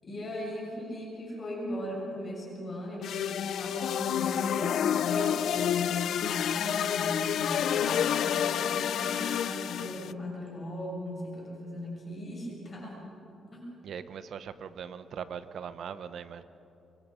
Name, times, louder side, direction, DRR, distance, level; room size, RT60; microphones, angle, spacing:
voice 1, 0.0-13.0 13.5-13.7, equal, 40° left, -3 dB, 7.0 m, -38 dB
sound 1, 3.0-10.1, left 9 dB, 70° left, 0.4 m, -29 dB
voice 2, 13.8-16.4, right 7 dB, 65° right, 12 dB, 1.0 m, -40 dB
25.0 x 24.0 x 5.1 m, 2.8 s
cardioid pair, 120°, 0 cm